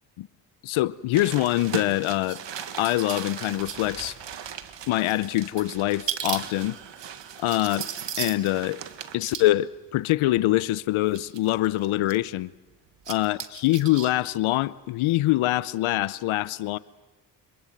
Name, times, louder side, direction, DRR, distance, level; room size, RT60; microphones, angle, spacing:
voice 1, 0.6-2.4 2.8-4.1 4.9-6.8 7.4-7.9 8.2-8.8 9.1-12.5 13.1-16.8, left 16 dB, 85° left, 0.8 m, -24 dB
sound 1, 1.1-9.5 10.3-10.4 11.1-12.2 12.9-14.1 14.4-14.5, right 9 dB, 65° right, 1.8 m, -36 dB
26.0 x 22.5 x 7.9 m
supercardioid pair, 60°, 47 cm